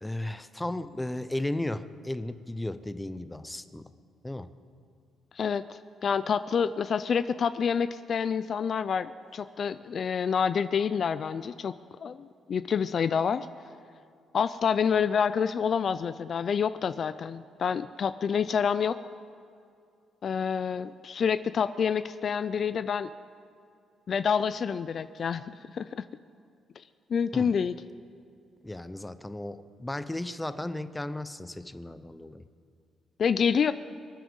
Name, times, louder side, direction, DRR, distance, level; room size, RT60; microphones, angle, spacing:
voice 1, 0.0-3.9 4.2-4.5 27.3-27.6 28.6-32.5, left 1 dB, 10° left, 12 dB, 0.7 m, -35 dB
voice 2, 5.3-11.8 12.0-13.5 14.3-18.9 20.2-23.1 24.1-26.0 27.1-27.8 33.2-33.7, left 7 dB, 50° left, 13 dB, 0.4 m, -28 dB
24.0 x 9.5 x 5.5 m, 2.4 s
cardioid pair, 90°, 0 cm